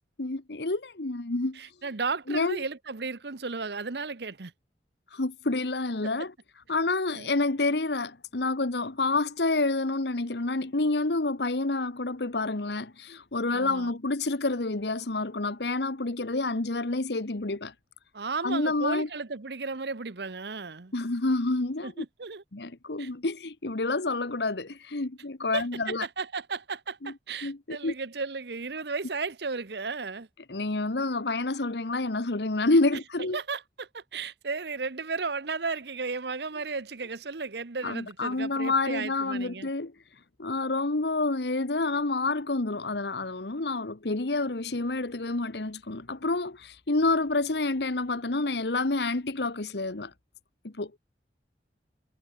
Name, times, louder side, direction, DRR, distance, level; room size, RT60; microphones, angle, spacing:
voice 1, 0.2-1.6 2.3-2.6 5.1-6.3 6.7-17.7 18.4-19.1 20.9-22.0 22.5-26.1 27.0-27.1 27.4-27.9 30.5-33.4 37.8-39.9 40.4-50.1 50.6-51.0, left 2 dB, 70° left, 1.3 m, -28 dB
voice 2, 1.6-4.5 7.1-7.3 13.5-13.9 18.1-20.9 21.8-22.4 23.0-23.1 25.5-30.3 33.3-39.7, right 4 dB, 70° right, 1.0 m, -34 dB
head